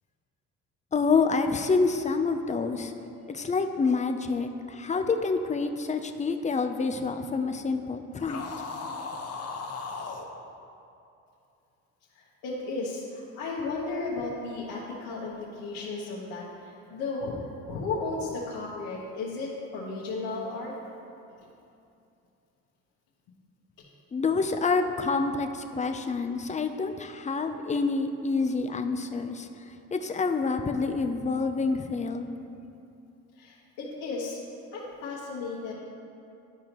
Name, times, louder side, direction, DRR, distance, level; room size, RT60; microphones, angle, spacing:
voice 1, 0.9-2.9 3.3-8.4 24.1-29.5 29.9-32.3, left 4 dB, 20° left, 7 dB, 0.6 m, -27 dB
sound 1, 8.2-10.3, left 4 dB, 45° left, 0.9 m, -36 dB
voice 2, 12.1-17.3 17.7-20.7 33.4-34.4 34.7-35.7, left 3 dB, 75° left, -6 dB, 1.3 m, -34 dB
12.0 x 5.0 x 3.0 m, 2.7 s
supercardioid pair, 75°, 35 cm